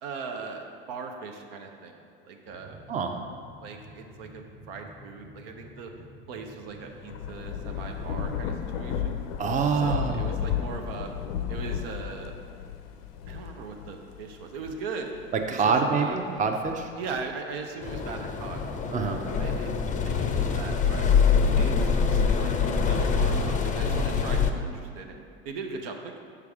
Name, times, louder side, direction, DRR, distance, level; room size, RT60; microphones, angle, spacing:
voice 1, 0.0-2.8 3.6-5.9 6.3-9.2 9.8-11.1 11.5-12.3 13.3-15.1 15.5-16.2 17.0-18.6 19.4-19.8 20.0-21.1 21.6-26.2, right 4 dB, 80° right, 3 dB, 0.7 m, -39 dB
sound 1, 2.4-12.2, equal, 55° right, 1.3 m, -50 dB
Thunder / Rain, 6.8-15.7 16.2-17.6, left 9 dB, 85° left, 0.5 m, -34 dB
voice 2, 9.4-10.3 15.3-16.9 18.9-19.2, right 5 dB, 25° right, 4 dB, 0.5 m, -26 dB
sound 2, 17.8-24.5, left 6 dB, 25° left, 0.5 m, -24 dB
6.7 x 4.7 x 3.5 m, 2.4 s
supercardioid pair, 90°, 29 cm